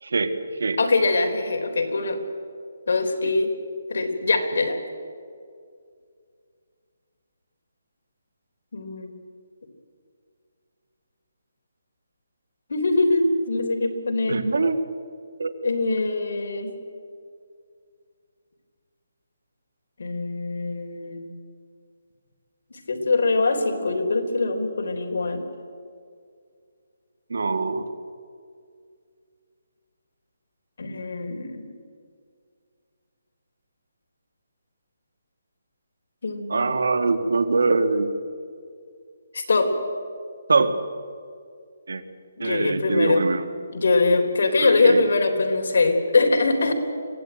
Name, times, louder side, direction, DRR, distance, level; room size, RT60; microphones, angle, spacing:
voice 1, 0.0-0.8 3.2-3.3 14.3-14.8 15.4-15.5 27.3-27.9 36.5-38.1 40.5-40.8 41.9-42.0 42.4-43.5 44.6-45.0, right 3 dB, 75° right, 9 dB, 2.1 m, -23 dB
voice 2, 0.8-2.2 2.9-3.5 3.9-4.8 8.7-9.1 12.7-14.4 15.6-16.7 20.0-21.2 22.7-25.4 30.8-31.7 36.2-36.8 39.3-39.7 42.4-43.2 43.7-46.7, left 3 dB, 60° left, 3 dB, 3.7 m, -23 dB
24.5 x 16.5 x 9.2 m, 2.2 s
hypercardioid pair, 170°, 0 cm